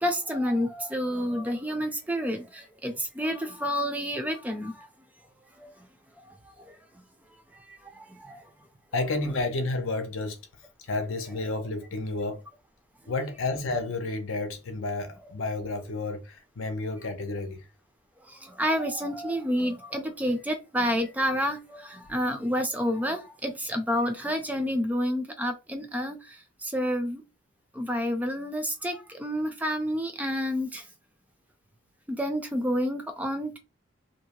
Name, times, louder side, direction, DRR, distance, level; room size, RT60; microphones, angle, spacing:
voice 1, 0.0-2.4 2.8-4.7 18.6-21.8 22.1-26.2 26.7-27.2 27.8-30.8 32.2-33.6, equal, 10° right, 0.4 m, -29 dB
voice 2, 8.9-10.4 10.9-12.4 13.1-17.6, left 2 dB, 75° left, 0.6 m, -31 dB
2.7 x 2.1 x 2.8 m
head